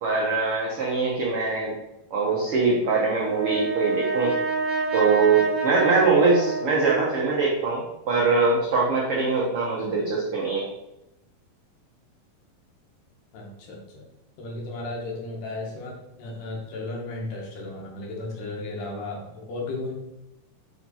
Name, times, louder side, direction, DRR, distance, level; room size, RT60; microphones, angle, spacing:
voice 1, 0.0-1.7 2.1-4.3 4.9-10.6, right 4 dB, 75° right, -3 dB, 1.3 m, -22 dB
Brass instrument, 2.9-7.3, right 3 dB, 45° right, 1.0 m, -28 dB
voice 2, 13.3-14.1 14.4-19.9, left 2 dB, 70° left, -1 dB, 2.6 m, -34 dB
5.7 x 4.7 x 4.1 m, 0.89 s
omnidirectional pair, 4.0 m